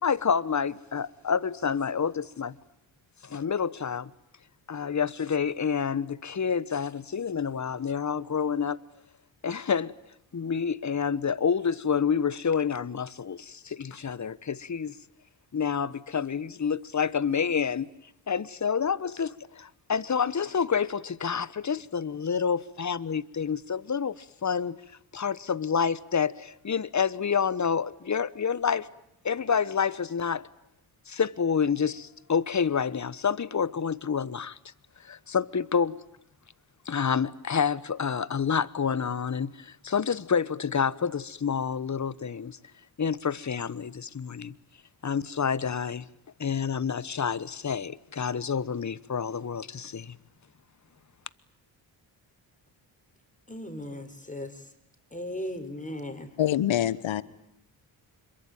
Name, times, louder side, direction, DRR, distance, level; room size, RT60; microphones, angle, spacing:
voice 1, 0.0-2.6 3.2-4.1 4.7-8.8 9.4-9.9 10.3-15.0 15.5-17.9 18.3-24.8 25.1-28.9 29.2-30.5 31.1-34.6 35.0-36.0 36.8-42.6 43.0-44.5 45.0-46.1 46.4-50.1, left 6 dB, 35° left, 1.2 m, -28 dB
voice 2, 53.5-54.5 55.1-56.3, left 1 dB, 15° left, 4.6 m, -37 dB
voice 3, 56.4-57.2, left 11 dB, 65° left, 1.2 m, -25 dB
26.0 x 23.0 x 9.2 m
supercardioid pair, 40°, 50 cm